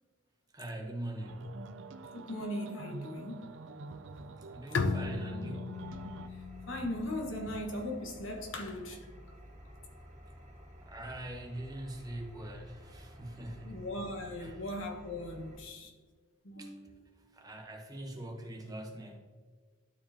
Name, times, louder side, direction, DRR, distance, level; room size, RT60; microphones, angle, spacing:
voice 1, 0.5-1.5 4.4-5.8 10.8-13.8 14.4-14.6 16.6-16.7 17.3-19.2, right 1 dB, 20° right, 1.1 m, -42 dB
sound 1, 1.2-6.3, right 3 dB, 70° right, 0.5 m, -47 dB
voice 2, 2.1-3.6 6.7-9.0 13.6-15.9 16.4-17.0, left 1 dB, 90° left, 1.4 m, -39 dB
Bowed string instrument, 4.7-8.3, left 4 dB, 70° left, 0.5 m, -37 dB
Engine, 5.7-15.6, equal, 35° right, 1.4 m, -52 dB
12.0 x 4.6 x 2.9 m
head